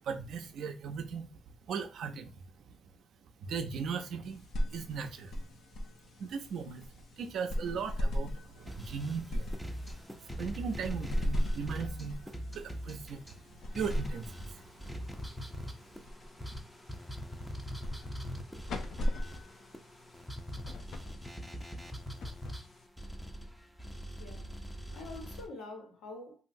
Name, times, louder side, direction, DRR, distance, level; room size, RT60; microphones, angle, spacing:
voice 1, 0.0-1.3 1.7-2.4 3.4-4.4 4.7-5.4 6.2-9.6 10.2-14.6, right 6 dB, 70° right, 0.5 m, -38 dB
sound 1, 4.2-23.1, left 1 dB, 65° left, 0.6 m, -39 dB
sound 2, 8.7-13.4 13.8-25.5, equal, ahead, 0.5 m, -43 dB
voice 2, 24.2-24.6 24.9-26.4, left 2 dB, 90° left, 1.3 m, -46 dB
3.0 x 2.6 x 2.6 m
cardioid pair, 90°, 0 cm